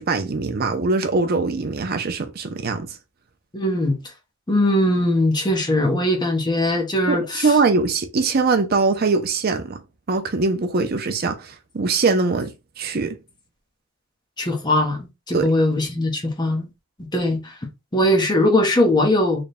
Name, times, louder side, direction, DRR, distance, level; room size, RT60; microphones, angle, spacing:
voice 1, 0.0-2.9 7.1-9.8 10.1-13.2 15.3-15.5, right 3 dB, 50° right, 0.5 m, -22 dB
voice 2, 3.5-4.0 4.5-7.5 14.4-16.7 17.1-17.5 17.9-19.4, left 1 dB, 20° left, 0.8 m, -20 dB
3.3 x 2.2 x 4.1 m
head